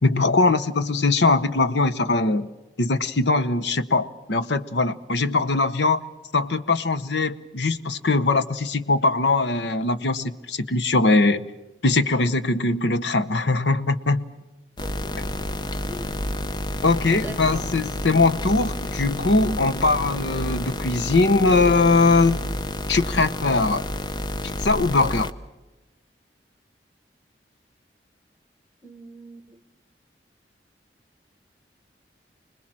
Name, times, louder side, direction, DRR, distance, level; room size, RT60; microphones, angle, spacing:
voice 1, 0.0-2.5 2.8-6.0 6.3-11.5 11.8-14.2 15.2-15.3 16.8-22.4 22.9-23.8 24.4-25.3, left 3 dB, 80° left, 13 dB, 0.9 m, -21 dB
sound 1, 14.8-25.3, left 1 dB, 25° left, 0.7 m, -30 dB
voice 2, 14.8-15.1 15.9-16.1 17.2-17.7 28.8-29.6, right 1 dB, 10° right, 11 dB, 1.4 m, -41 dB
26.0 x 20.5 x 7.5 m, 1.1 s
head